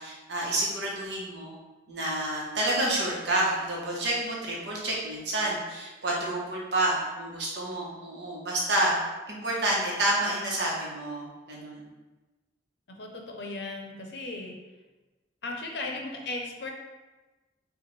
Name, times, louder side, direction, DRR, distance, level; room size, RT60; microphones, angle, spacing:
voice 1, 0.0-1.6 1.9-11.8, right 1 dB, 65° right, -4 dB, 1.0 m, -29 dB
voice 2, 12.9-14.6 15.4-16.7, left 2 dB, 65° left, 1 dB, 0.6 m, -36 dB
5.0 x 2.4 x 3.1 m, 1.2 s
head